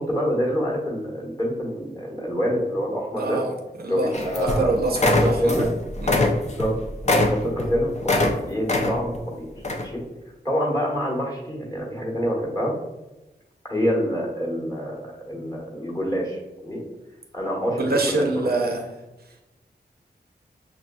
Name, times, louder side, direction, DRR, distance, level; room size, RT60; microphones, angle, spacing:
voice 1, 0.0-3.4 3.9-5.7 6.6-6.8 7.2-9.5 9.8-10.0 10.4-12.7 13.7-16.8 17.3-18.6, equal, 20° left, -4 dB, 1.2 m, -26 dB
voice 2, 3.2-3.5 3.8-5.7 6.0-6.3 17.8-18.8, right 2 dB, 65° right, 2 dB, 0.6 m, -25 dB
sound 1, 4.1-4.7 4.9-5.7 6.0-8.3 8.7-9.2 9.6-9.9, left 2 dB, 40° left, 0.5 m, -22 dB
5.9 x 2.5 x 2.2 m, 1.0 s
wide cardioid pair, 110°, 17 cm